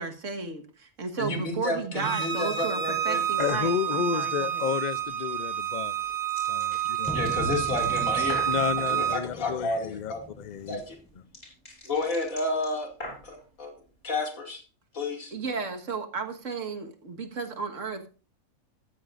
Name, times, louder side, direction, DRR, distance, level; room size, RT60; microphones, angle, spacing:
voice 1, 0.0-0.6 1.0-4.8 15.3-18.1, right 5 dB, 65° right, 1.9 m, -34 dB
voice 2, 1.2-3.2 7.1-8.5 8.9-10.2 10.7-11.0 11.8-12.9 13.2-13.7 14.0-14.6 14.9-15.3, left 2 dB, 75° left, 2.9 m, -31 dB
Bowed string instrument, 2.0-9.2, right 10 dB, 80° right, 1.6 m, -29 dB
voice 3, 3.4-6.0 6.5-7.1 8.5-10.8, left 8 dB, 50° left, 0.5 m, -31 dB
sound 1, 3.4-3.7 5.6-8.7 10.2-13.4, left 1 dB, 30° left, 5.9 m, -43 dB
sound 2, 7.0-11.1, left 2 dB, 5° left, 0.6 m, -40 dB
14.5 x 13.0 x 2.5 m
omnidirectional pair, 1.4 m